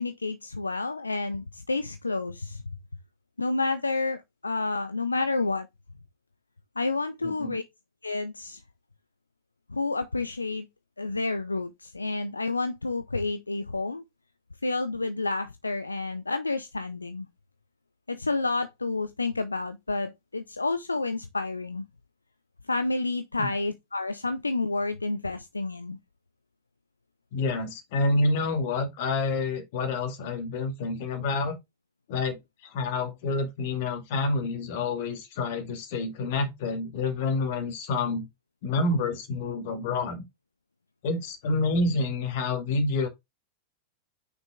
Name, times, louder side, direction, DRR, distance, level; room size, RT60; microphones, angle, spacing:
voice 1, 0.0-2.6 3.4-5.7 6.8-7.7 8.0-8.6 9.7-10.7 11.0-14.0 14.6-17.3 18.1-21.9 22.7-26.0, left 3 dB, 80° left, 0.5 m, -30 dB
voice 2, 7.2-7.6 23.4-23.5 27.3-31.6 32.1-38.3 38.6-40.2 41.0-43.1, left 3 dB, 50° left, 2.2 m, -28 dB
6.0 x 5.2 x 3.5 m
figure-of-eight pair, 90°, 0 cm